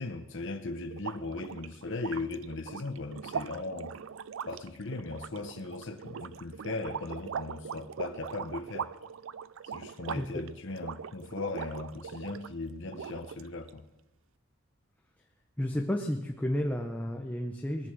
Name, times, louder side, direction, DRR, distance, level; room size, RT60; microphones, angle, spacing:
voice 1, 0.0-3.9 4.5-8.9 9.7-13.8, left 3 dB, 65° left, 5 dB, 0.9 m, -38 dB
sound 1, 0.9-12.5 12.9-13.7, right 7 dB, 75° right, 0.4 m, -41 dB
voice 2, 15.6-17.9, left 1 dB, 10° left, 3 dB, 0.8 m, -32 dB
20.5 x 8.4 x 6.2 m, 1.0 s
head